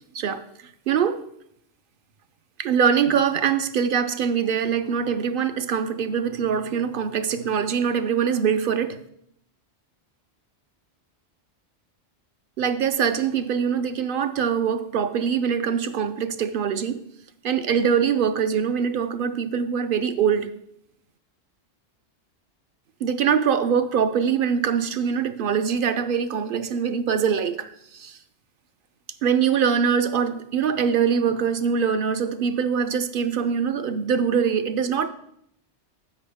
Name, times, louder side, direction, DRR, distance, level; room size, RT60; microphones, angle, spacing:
voice 1, 0.9-1.2 2.6-9.0 12.6-17.0 17.4-20.5 23.0-28.2 29.2-35.1, right 7 dB, 60° right, 0.7 m, -23 dB
10.5 x 7.6 x 3.5 m
omnidirectional pair, 1.2 m